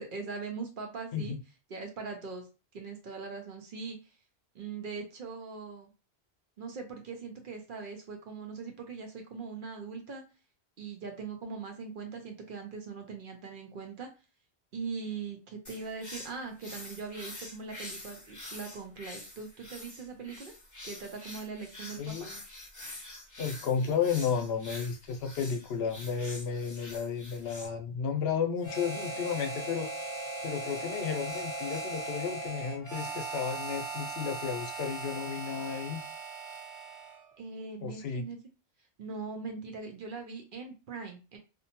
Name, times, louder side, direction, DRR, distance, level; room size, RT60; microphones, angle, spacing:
voice 1, 0.0-1.4 1.7-2.5 2.7-4.2 4.5-5.9 6.6-10.2 10.8-14.1 14.7-20.5 20.8-22.3 37.4-38.4 39.0-41.4, right 4 dB, 60° right, 4 dB, 0.7 m, -41 dB
sound 1, 15.6-27.7, left 1 dB, 20° left, 0.7 m, -46 dB
voice 2, 22.0-22.4 23.4-29.9 30.4-36.0 37.8-38.2, left 7 dB, 80° left, 5 dB, 0.8 m, -33 dB
Harmonica, 28.6-37.2, right 3 dB, 20° right, 0.7 m, -38 dB
2.6 x 2.1 x 2.8 m, 0.31 s
omnidirectional pair, 1.1 m